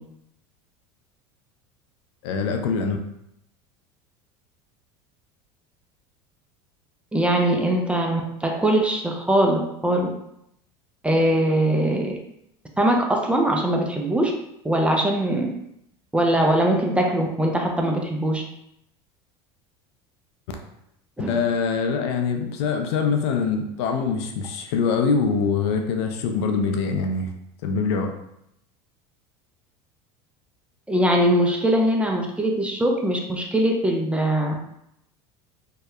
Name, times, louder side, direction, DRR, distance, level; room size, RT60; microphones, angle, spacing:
voice 1, 2.2-3.0 21.3-27.3 27.6-28.1, left 5 dB, 75° left, 4 dB, 0.4 m, -24 dB
voice 2, 7.1-10.1 11.0-12.1 12.8-14.3 14.6-15.5 16.1-18.4 21.2-21.4 30.9-34.5, right 1 dB, 10° right, 1 dB, 0.3 m, -21 dB
2.7 x 2.1 x 2.3 m, 0.78 s
supercardioid pair, 105°, 14 cm